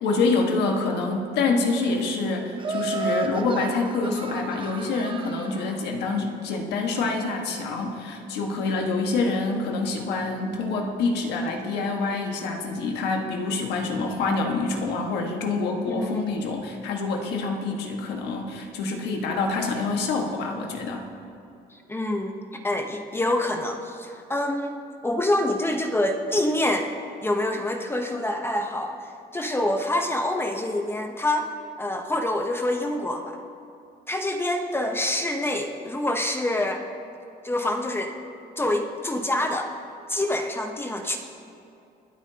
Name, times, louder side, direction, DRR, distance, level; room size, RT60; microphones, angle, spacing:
voice 1, 0.0-21.0, left 3 dB, 80° left, 2 dB, 1.6 m, -26 dB
Laughter, 2.6-5.8, right 4 dB, 30° right, 0.8 m, -32 dB
voice 2, 15.9-16.2 21.7-24.8 25.0-27.0 27.2-31.5 31.8-33.4 34.1-36.9 37.4-38.1 38.6-39.7 40.1-41.2, left 1 dB, 15° left, 4 dB, 0.9 m, -26 dB
23.5 x 8.8 x 2.8 m, 2.7 s
cardioid pair, 110°, 17 cm